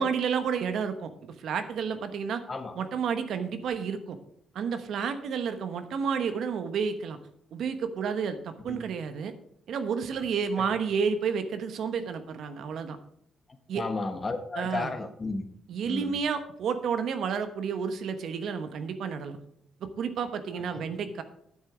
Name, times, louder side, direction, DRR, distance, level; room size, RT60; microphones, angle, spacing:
voice 1, 0.0-2.4 2.7-4.2 4.5-7.2 7.5-9.3 9.7-13.0 13.7-13.9 14.5-15.0 15.7-19.4 19.8-21.2, right 6 dB, 70° right, 9 dB, 1.0 m, -31 dB
voice 2, 13.7-15.4 15.9-16.1 20.7-20.8, left 3 dB, 30° left, 8 dB, 1.3 m, -33 dB
9.6 x 7.5 x 5.0 m, 0.70 s
cardioid pair, 90°, 0 cm